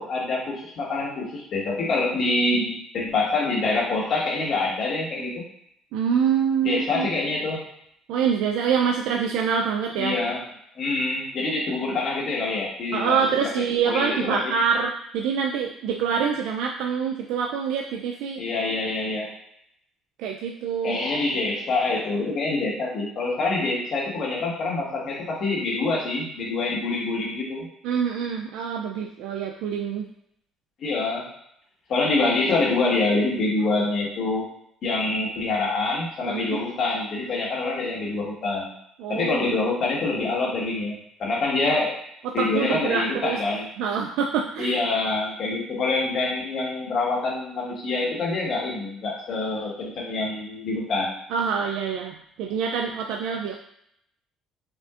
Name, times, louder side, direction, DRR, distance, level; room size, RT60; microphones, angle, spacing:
voice 1, 0.0-5.4 6.6-7.6 10.0-10.4 10.7-13.4 13.7-14.4 18.4-19.3 20.8-27.7 30.8-31.2 31.9-34.4 34.8-38.7 39.1-42.0 42.3-43.7 44.6-51.1, left 3 dB, 50° left, -4 dB, 1.4 m, -26 dB
voice 2, 5.9-7.1 8.1-10.2 12.9-18.4 20.2-21.0 27.8-30.1 36.3-36.6 39.0-39.4 42.2-43.4 43.8-44.8 51.3-53.5, right 7 dB, 85° right, 1 dB, 0.3 m, -25 dB
5.9 x 2.5 x 2.4 m, 0.73 s
cardioid pair, 120°, 0 cm